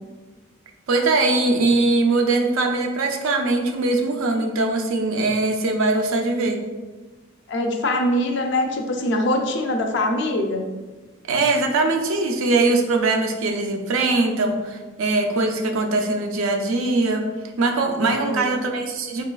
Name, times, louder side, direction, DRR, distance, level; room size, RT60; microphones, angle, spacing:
voice 1, 0.9-6.6 11.3-17.2 17.6-19.2, right 2 dB, 75° right, 3 dB, 0.4 m, -21 dB
voice 2, 7.5-10.6 18.1-18.5, left 1 dB, 55° left, 3 dB, 0.3 m, -23 dB
3.9 x 2.3 x 2.2 m, 1.3 s
head